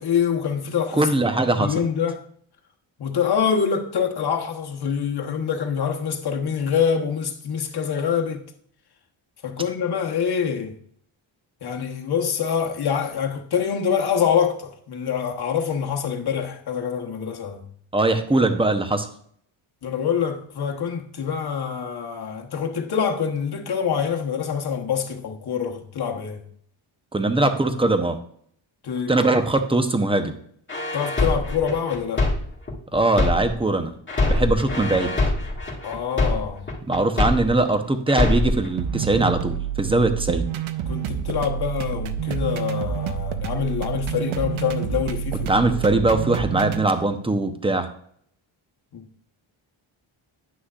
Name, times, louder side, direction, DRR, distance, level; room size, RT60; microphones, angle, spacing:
voice 1, 0.0-1.1 1.6-2.2 3.0-8.4 9.4-10.7 11.6-17.6 19.8-26.4 28.8-29.2 30.9-32.3 35.8-36.7 40.9-45.8 48.9-49.1, left 7 dB, 50° left, 1.1 m, -25 dB
voice 2, 1.0-1.7 17.9-19.1 27.1-28.2 29.1-30.4 32.9-33.9 34.3-35.1 36.9-40.4 45.5-47.9, right 2 dB, 10° right, 0.7 m, -21 dB
sound 1, 30.7-33.7 34.1-37.7 38.1-38.7, left 2 dB, 25° left, 1.8 m, -23 dB
sound 2, 38.8-46.8, right 9 dB, 75° right, 0.7 m, -28 dB
9.7 x 6.2 x 2.4 m
wide cardioid pair, 105°, 48 cm